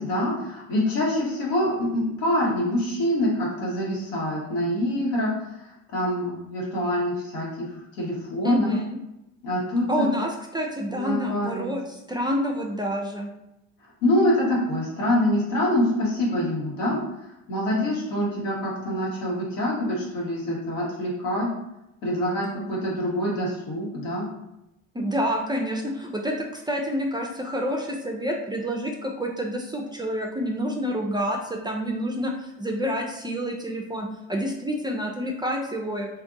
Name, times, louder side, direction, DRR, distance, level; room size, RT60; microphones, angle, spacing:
voice 1, 0.0-5.3 5.9-7.7 8.0-8.7 9.4-10.0 10.9-11.7 14.0-17.0 17.5-21.5 22.0-24.2, left 1 dB, 80° left, -5 dB, 1.4 m, -25 dB
voice 2, 8.4-9.0 9.9-13.3 24.9-36.1, equal, 10° right, 0 dB, 0.4 m, -28 dB
2.6 x 2.4 x 3.8 m, 0.89 s
hypercardioid pair, 75°, 38 cm